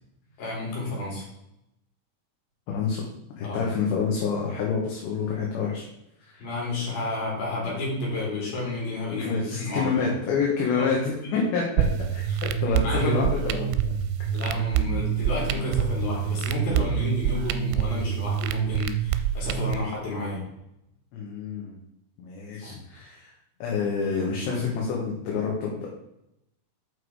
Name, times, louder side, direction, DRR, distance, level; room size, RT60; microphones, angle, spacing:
voice 1, 0.4-1.3 3.4-3.7 6.4-9.8 10.7-10.9 11.2-11.4 12.3-13.2 14.3-20.4 22.6-22.7 24.4-24.6, left 2 dB, 50° left, -4 dB, 4.8 m, -31 dB
voice 2, 2.7-3.0 3.4-5.8 6.3-6.5 9.1-13.8 21.1-21.8 22.2-23.3 23.6-25.9, left 5 dB, 70° left, -3 dB, 3.2 m, -28 dB
sound 1, 11.8-19.8, right 9 dB, 85° right, 3.2 m, -26 dB
8.2 x 5.8 x 4.7 m, 0.84 s
omnidirectional pair, 5.8 m